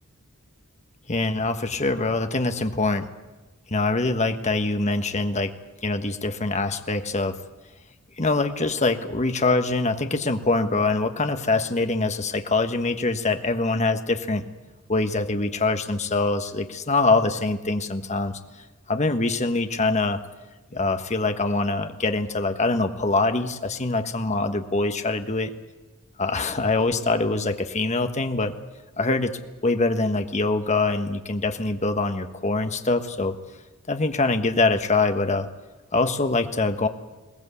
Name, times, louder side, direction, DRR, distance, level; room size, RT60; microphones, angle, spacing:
voice 1, 1.1-3.1 3.7-5.5 5.8-7.4 8.2-14.4 14.9-18.3 18.9-20.2 20.7-25.5 26.2-28.5 29.0-29.3 29.6-33.4 33.9-35.5 35.9-36.9, left 3 dB, 30° left, 7 dB, 1.3 m, -24 dB
21.5 x 19.0 x 8.4 m, 1.2 s
head